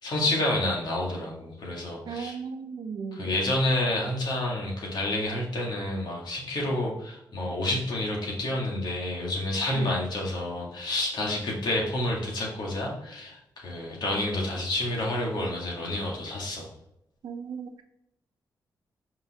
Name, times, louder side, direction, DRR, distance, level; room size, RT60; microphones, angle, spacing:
voice 1, 0.0-2.4 3.2-16.7, left 1 dB, 70° left, -2 dB, 2.1 m, -29 dB
voice 2, 2.1-3.2 9.7-10.0 17.2-17.8, right 6 dB, 70° right, 7 dB, 0.7 m, -36 dB
5.3 x 5.3 x 3.6 m, 0.82 s
wide cardioid pair, 115°, 7 cm